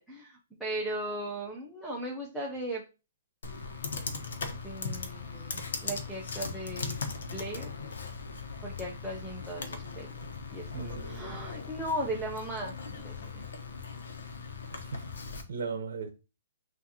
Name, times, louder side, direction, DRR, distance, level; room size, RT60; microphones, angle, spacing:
voice 1, 0.0-2.8 4.6-7.0 7.3-7.7 8.6-10.1 10.5-13.4, right 1 dB, ahead, 0.7 m, -37 dB
Computer keyboard, 3.4-15.4, left 4 dB, 80° left, 1.1 m, -39 dB
voice 2, 10.7-11.4 14.7-15.0 15.5-16.1, right 5 dB, 65° right, 0.8 m, -37 dB
6.2 x 2.6 x 2.8 m
hypercardioid pair, 165°, 0 cm